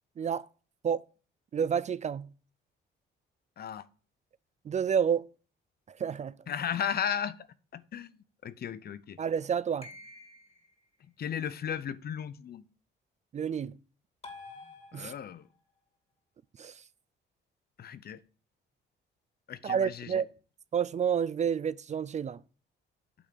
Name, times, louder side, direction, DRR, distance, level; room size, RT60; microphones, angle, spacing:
voice 1, 1.5-2.3 4.7-5.3 6.0-6.3 9.2-9.9 13.3-13.7 14.9-15.1 16.6-16.7 19.6-20.3 20.7-22.4, right 7 dB, 35° right, 0.4 m, -29 dB
voice 2, 6.5-7.4 7.7-8.1 8.4-9.2 11.2-12.6 14.9-15.4 17.8-18.2 19.5-20.2, left 8 dB, 50° left, 0.7 m, -35 dB
sound 1, 9.8-10.7 14.2-15.5, left 3 dB, 30° left, 2.5 m, -48 dB
8.7 x 3.5 x 6.6 m
cardioid pair, 90°, 20 cm